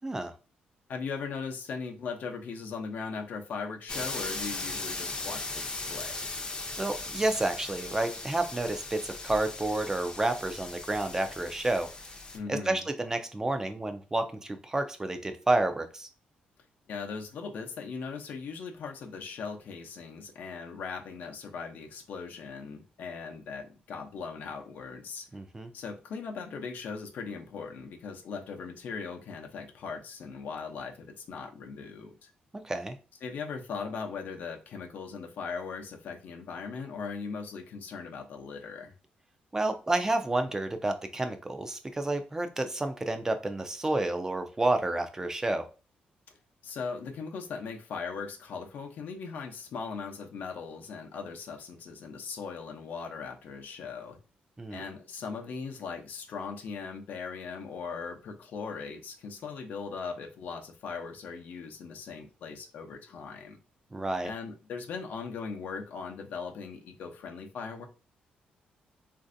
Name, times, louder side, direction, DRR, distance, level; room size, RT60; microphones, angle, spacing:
voice 1, 0.0-0.3 6.8-11.9 12.5-16.1 25.3-25.7 32.6-32.9 39.5-45.6 54.6-54.8 63.9-64.3, right 2 dB, 15° right, 0.4 m, -30 dB
voice 2, 0.9-6.3 12.3-12.8 16.9-25.3 25.7-32.3 33.2-38.9 46.6-54.2 54.7-63.6 64.2-67.9, left 5 dB, 70° left, 0.6 m, -39 dB
sound 1, 3.9-12.4, left 3 dB, 25° left, 0.6 m, -38 dB
3.1 x 2.6 x 2.5 m
cardioid pair, 100°, 3 cm